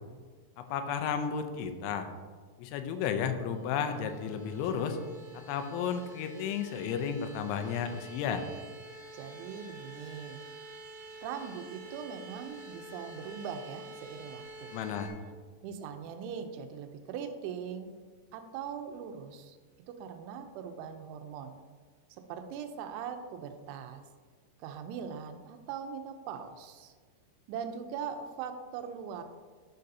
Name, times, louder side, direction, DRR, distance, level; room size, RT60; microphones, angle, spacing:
voice 1, 0.6-2.1 2.6-5.0 5.3-8.5 14.7-15.1, left 7 dB, 85° left, 7 dB, 3.0 m, -33 dB
sound 1, 3.5-15.1, right 2 dB, 60° right, 3.2 m, -49 dB
voice 2, 9.1-10.4 11.2-14.7 15.6-17.9 18.3-19.6 19.9-21.6 22.3-24.0 24.6-26.9 27.5-29.2, right 7 dB, 85° right, 6 dB, 3.1 m, -41 dB
12.0 x 6.6 x 2.7 m, 1.5 s
omnidirectional pair, 5.4 m